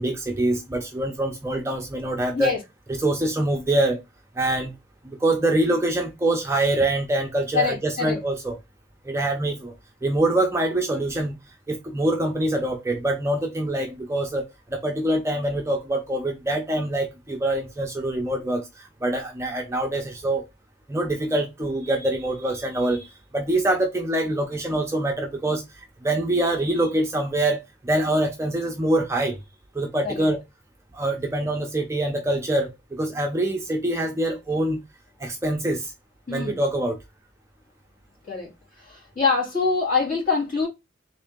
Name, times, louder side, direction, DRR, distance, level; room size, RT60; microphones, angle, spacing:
voice 1, 0.0-2.5 2.9-4.0 4.3-4.7 5.0-8.6 9.0-9.7 10.0-11.3 11.7-20.4 20.9-29.4 29.7-30.4 30.9-34.8 35.2-35.9 36.3-37.0, right 1 dB, 15° right, 0.4 m, -25 dB
voice 2, 7.5-8.2 30.0-30.3 36.3-36.6 38.3-38.5 38.8-40.7, left 4 dB, 40° left, 1.7 m, -24 dB
3.6 x 2.6 x 3.5 m
head